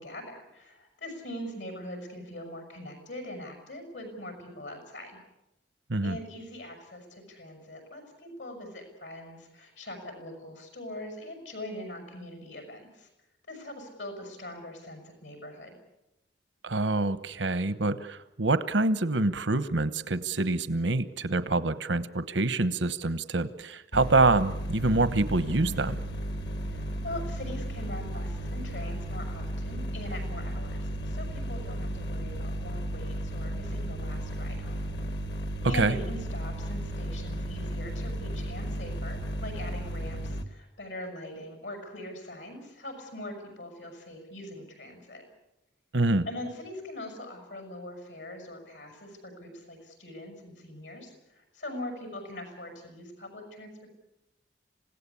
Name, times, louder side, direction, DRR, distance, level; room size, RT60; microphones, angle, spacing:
voice 1, 0.0-5.2 6.0-13.1 13.5-15.8 26.7-34.9 35.6-45.2 46.2-53.9, left 1 dB, 80° left, 5 dB, 6.6 m, -42 dB
voice 2, 16.6-26.0 35.6-35.9 45.9-46.3, right 2 dB, 85° right, 13 dB, 1.0 m, -26 dB
sound 1, 23.9-40.4, right 1 dB, 65° left, 1.5 m, -34 dB
27.0 x 17.0 x 8.4 m, 0.95 s
head